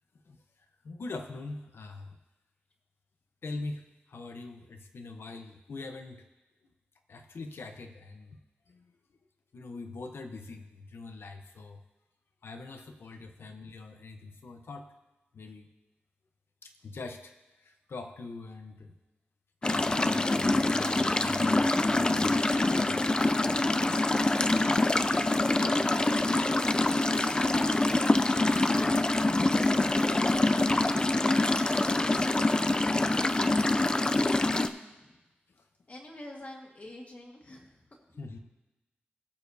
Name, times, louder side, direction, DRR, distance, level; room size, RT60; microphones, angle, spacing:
voice 1, 0.8-2.2 3.4-6.2 7.1-8.4 8.7-8.9 9.5-11.8 12.4-14.9 15.3-15.7 16.6-17.3 17.6-18.9 19.6-22.4 22.7-23.0 38.2-38.4, left 3 dB, 80° left, 5 dB, 0.9 m, -43 dB
sound 1, 19.6-34.7, left 2 dB, 20° left, 0.4 m, -25 dB
voice 2, 24.1-27.6 28.8-31.0 33.8-35.1 35.9-37.7 38.1-38.4, left 1 dB, 40° left, 0 dB, 1.7 m, -47 dB
18.5 x 6.9 x 2.7 m, 1.1 s
wide cardioid pair, 125°, 4 cm